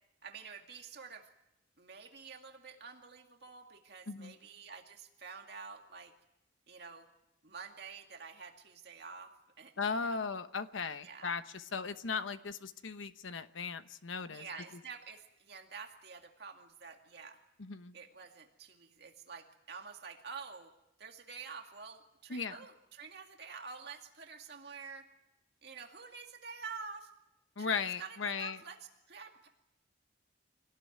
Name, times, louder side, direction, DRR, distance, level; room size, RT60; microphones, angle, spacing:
voice 1, 0.2-1.3 1.8-6.1 6.7-7.1 7.4-9.3 9.6-10.3 11.0-11.3 14.2-17.4 17.9-20.7 21.0-25.1 25.6-27.1 27.6-28.8 29.1-29.5, right 5 dB, 55° right, 3 dB, 2.2 m, -48 dB
voice 2, 9.8-14.5 17.6-18.0 22.3-22.6 27.6-28.6, left 5 dB, 80° left, 11 dB, 1.0 m, -37 dB
26.0 x 18.0 x 9.3 m, 0.91 s
head